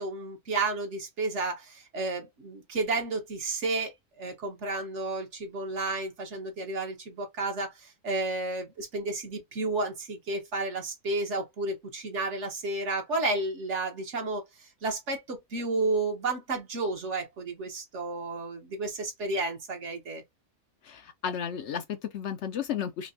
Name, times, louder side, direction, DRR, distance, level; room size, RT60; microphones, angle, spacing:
voice 1, 0.0-20.2, right 2 dB, 60° right, 1.4 m, -32 dB
voice 2, 20.8-23.1, left 8 dB, 65° left, 0.8 m, -33 dB
5.1 x 2.2 x 2.6 m
omnidirectional pair, 1.4 m